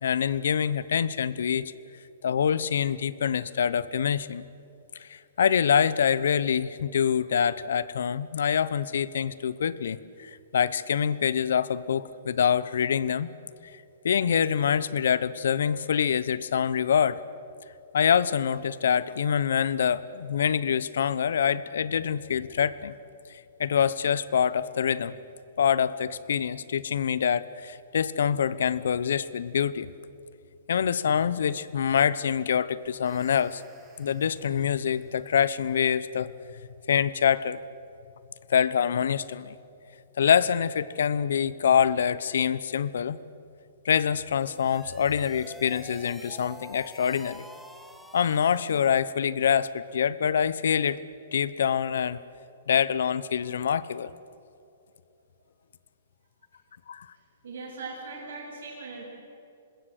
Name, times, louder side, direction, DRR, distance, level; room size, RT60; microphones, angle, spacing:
voice 1, 0.0-1.7 2.2-4.5 5.0-13.3 13.6-13.7 14.0-17.2 17.9-22.9 23.6-25.1 25.6-29.9 30.7-33.6 34.0-36.3 36.9-37.6 38.5-39.5 40.2-43.2 43.8-47.5 48.1-51.0 51.3-52.2 52.7-54.1 56.9-57.1, left 8 dB, 75° left, 18 dB, 0.9 m, -25 dB
sound 1, 32.8-36.0, right 3 dB, 20° right, 7.1 m, -60 dB
sound 2, 44.3-49.1, equal, ahead, 1.8 m, -47 dB
voice 2, 57.4-59.0, right 4 dB, 80° right, -6 dB, 7.4 m, -39 dB
26.0 x 20.5 x 8.2 m, 2.6 s
hypercardioid pair, 140°, 0 cm